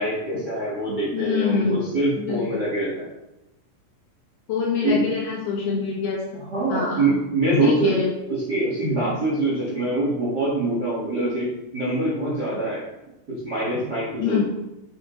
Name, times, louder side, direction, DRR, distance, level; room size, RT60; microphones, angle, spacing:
voice 1, 0.0-3.1 4.8-5.0 6.4-7.9 8.5-11.5 11.7-12.8 13.4-14.4, right 2 dB, 60° right, -7 dB, 1.0 m, -24 dB
voice 2, 1.1-1.8 2.2-2.6 4.5-6.4 6.7-7.1 7.6-8.1 14.2-14.4, left 5 dB, 70° left, -3 dB, 2.7 m, -25 dB
8.0 x 6.9 x 3.9 m, 0.97 s
omnidirectional pair, 5.7 m